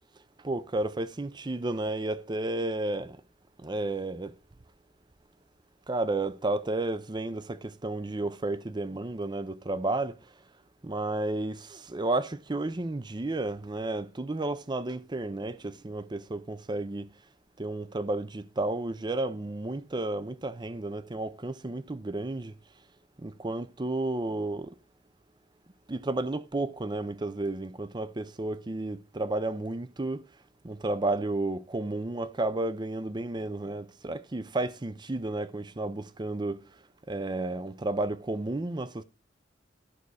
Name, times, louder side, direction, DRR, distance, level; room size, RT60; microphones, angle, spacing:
voice 1, 0.4-3.2 3.6-4.4 5.9-10.2 10.8-17.1 17.6-22.5 23.2-24.7 25.9-30.2 30.6-36.6 37.1-39.0, right 2 dB, 25° right, 0.5 m, -32 dB
12.0 x 4.1 x 6.3 m
head